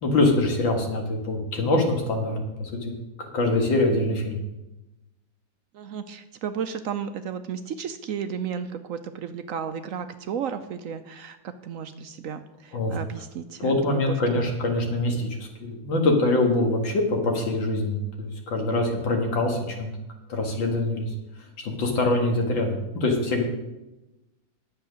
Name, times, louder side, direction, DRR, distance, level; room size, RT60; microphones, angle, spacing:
voice 1, 0.0-2.9 3.2-4.4 12.7-13.0 13.6-19.9 20.3-21.1 21.6-23.4, left 2 dB, 90° left, 2 dB, 2.6 m, -24 dB
voice 2, 5.7-14.5, right 7 dB, 70° right, 9 dB, 0.8 m, -34 dB
10.5 x 7.5 x 6.3 m, 0.98 s
omnidirectional pair, 2.0 m